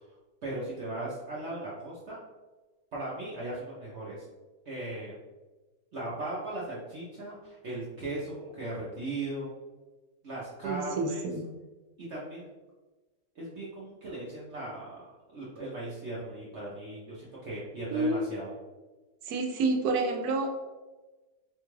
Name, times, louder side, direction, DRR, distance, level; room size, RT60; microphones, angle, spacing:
voice 1, 0.4-2.2 2.9-4.2 4.7-5.1 5.9-9.5 10.2-11.3 12.1-12.4 13.4-18.5, right 2 dB, 55° right, -6 dB, 0.8 m, -38 dB
voice 2, 10.6-11.4 17.9-18.3 19.3-20.5, right 3 dB, 75° right, 3 dB, 1.1 m, -29 dB
4.2 x 2.3 x 3.1 m, 1.2 s
omnidirectional pair, 1.7 m